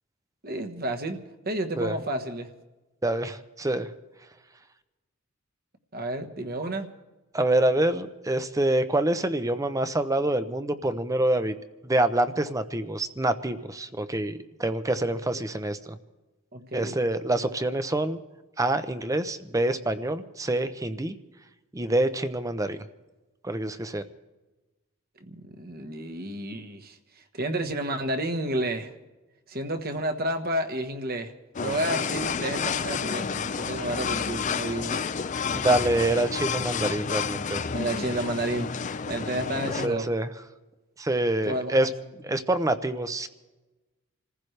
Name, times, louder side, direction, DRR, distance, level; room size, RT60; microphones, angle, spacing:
voice 1, 0.4-1.2 1.4-2.5 5.9-6.9 15.3-15.4 16.5-17.0 25.3-27.0 27.3-28.9 29.5-31.3 31.6-35.0 37.7-38.7 39.1-40.1 41.4-41.9, right 1 dB, 45° right, 6 dB, 1.3 m, -31 dB
voice 2, 3.0-3.9 7.3-11.5 11.8-16.0 16.7-18.2 18.6-21.1 21.7-22.8 23.4-24.0 35.6-37.6 39.6-40.3 41.0-41.9 42.2-43.3, right 1 dB, 15° right, 10 dB, 0.7 m, -26 dB
sound 1, 31.5-39.9, left 6 dB, 35° left, 0.5 m, -30 dB
27.5 x 15.0 x 3.3 m, 1.1 s
head